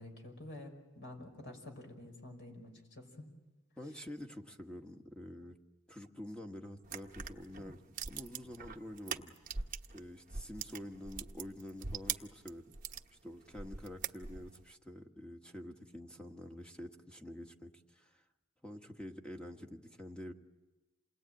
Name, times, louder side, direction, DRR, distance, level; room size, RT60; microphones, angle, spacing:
voice 1, 0.0-3.3, left 1 dB, 55° left, 4 dB, 5.4 m, -49 dB
voice 2, 3.8-5.6 5.9-9.4 9.9-12.8 13.2-18.2 18.6-20.3, left 1 dB, 5° left, 3 dB, 1.5 m, -48 dB
sound 1, 6.8-10.0 10.3-13.1 13.5-14.6, right 6 dB, 40° right, 1.0 m, -42 dB
28.0 x 20.5 x 9.1 m, 1.1 s
head